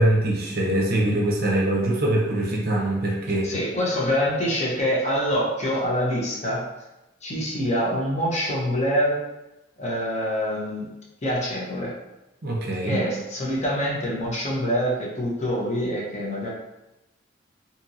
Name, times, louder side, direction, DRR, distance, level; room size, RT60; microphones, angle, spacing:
voice 1, 0.0-3.4 12.4-13.0, right 1 dB, 50° right, -2 dB, 0.6 m, -23 dB
voice 2, 3.4-6.6 7.2-9.2 9.8-10.9 11.2-11.9 12.9-16.5, equal, 35° left, -3 dB, 0.7 m, -25 dB
2.8 x 2.6 x 2.7 m, 0.95 s
head